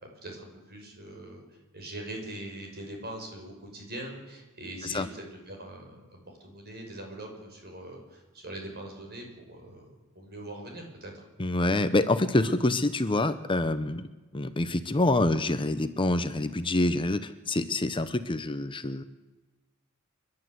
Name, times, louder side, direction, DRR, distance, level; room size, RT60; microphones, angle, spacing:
voice 1, 0.2-1.4 1.7-11.2, right 1 dB, 45° right, 2 dB, 6.0 m, -42 dB
voice 2, 11.4-14.1 14.3-19.0, left 2 dB, 25° left, 11 dB, 0.8 m, -26 dB
29.5 x 12.0 x 8.0 m, 1.2 s
head